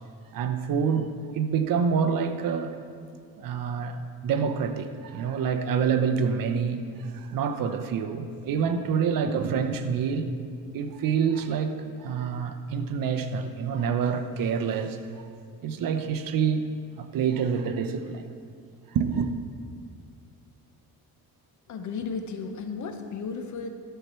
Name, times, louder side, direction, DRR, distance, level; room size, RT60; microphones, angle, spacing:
voice 1, 0.3-2.8 3.4-10.3 10.7-15.0 15.6-16.7 17.0-18.2 18.9-19.3, right 6 dB, 60° right, 0.8 m, -27 dB
voice 2, 21.7-23.7, left 5 dB, 50° left, 0.9 m, -34 dB
12.5 x 6.7 x 4.4 m
cardioid pair, 135°, 37 cm